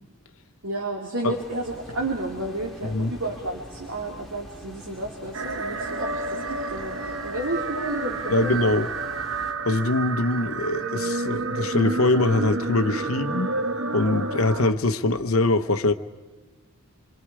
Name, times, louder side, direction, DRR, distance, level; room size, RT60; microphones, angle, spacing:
voice 1, 0.6-8.7, right 2 dB, 75° right, 2.7 m, -31 dB
sound 1, 1.3-9.5, equal, ahead, 1.9 m, -44 dB
sound 2, 5.3-14.7, right 3 dB, 60° right, 0.9 m, -30 dB
voice 2, 8.3-8.9 9.6-13.5 13.9-15.9, left 2 dB, 75° left, 0.9 m, -23 dB
27.5 x 23.0 x 4.8 m
head